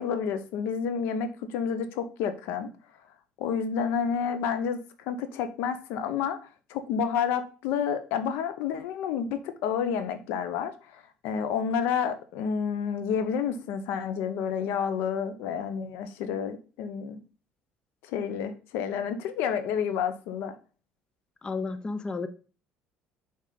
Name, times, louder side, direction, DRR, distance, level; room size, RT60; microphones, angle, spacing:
voice 1, 0.0-2.7 3.4-4.8 5.1-6.4 6.7-17.2 18.1-20.5, left 7 dB, 75° left, 10 dB, 0.8 m, -30 dB
voice 2, 21.4-22.3, left 4 dB, 25° left, 11 dB, 0.6 m, -32 dB
6.5 x 4.0 x 3.9 m, 0.36 s
supercardioid pair, 105°, 4 cm